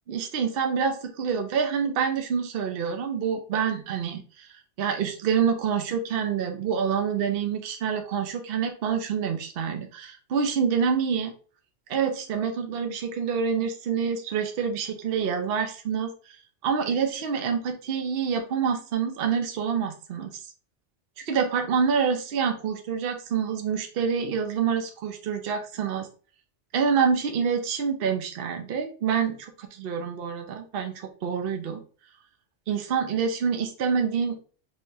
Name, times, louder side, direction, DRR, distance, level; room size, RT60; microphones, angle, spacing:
voice 1, 0.1-4.5 4.8-11.3 11.9-16.1 16.6-20.4 21.2-26.1 26.7-31.8 32.7-34.4, right 6 dB, 60° right, 5 dB, 0.8 m, -27 dB
4.2 x 3.5 x 2.6 m, 0.40 s
omnidirectional pair, 1.2 m